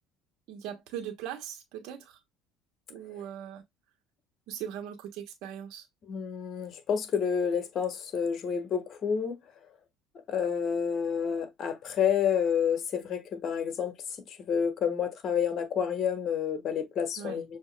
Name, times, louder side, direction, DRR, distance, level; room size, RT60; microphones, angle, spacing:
voice 1, 0.5-2.2 2.9-3.6 4.5-5.9 17.2-17.4, right 9 dB, 70° right, 1.2 m, -40 dB
voice 2, 6.1-9.4 10.3-13.9 14.3-17.4, left 7 dB, 50° left, 1.2 m, -29 dB
6.5 x 2.8 x 2.2 m
supercardioid pair, 85°, 0 cm